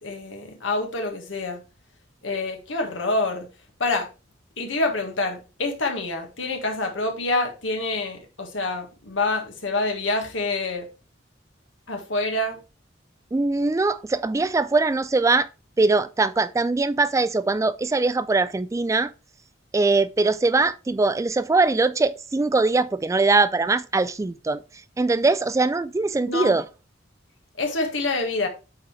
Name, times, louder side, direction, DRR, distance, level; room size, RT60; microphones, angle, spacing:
voice 1, 0.0-1.6 2.2-3.5 3.8-4.1 4.6-10.9 11.9-12.6 26.3-26.6 27.6-28.5, left 2 dB, 85° left, 1.6 m, -26 dB
voice 2, 13.3-15.5 15.8-19.1 19.7-24.6 25.0-26.6, right 3 dB, 15° right, 0.3 m, -21 dB
8.7 x 4.1 x 3.1 m
head